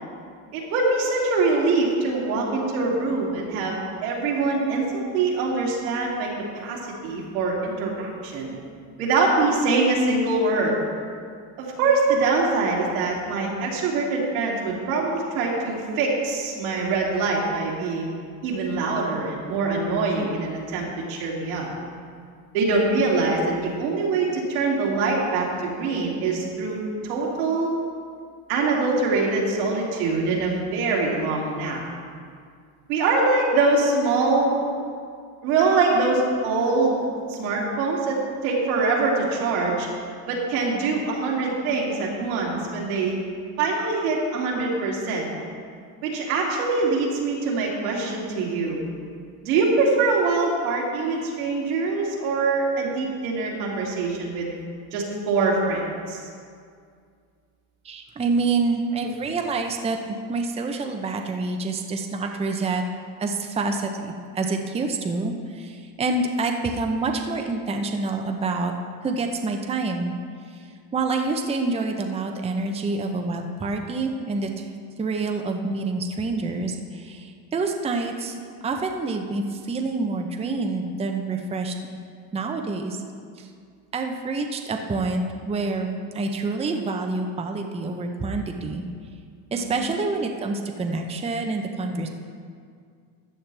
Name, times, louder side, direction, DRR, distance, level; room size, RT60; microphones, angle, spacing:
voice 1, 0.5-6.3 6.5-8.5 9.0-10.7 11.6-18.1 18.4-21.7 22.5-27.7 28.5-31.8 32.9-34.6 35.4-39.9 40.3-43.2 43.6-45.3 46.0-48.8 49.4-54.5 54.9-55.8 56.1-56.2 89.5-89.8, right 3 dB, 85° right, -3 dB, 2.7 m, -24 dB
voice 2, 57.8-62.8 63.2-68.7 69.0-70.1 70.5-74.7 75.0-78.4 78.6-81.7 82.3-83.0 83.4-83.5 83.9-88.8 89.5-92.1, right 3 dB, 15° right, 4 dB, 0.7 m, -27 dB
14.0 x 8.6 x 3.4 m, 2.2 s
supercardioid pair, 120°, 42 cm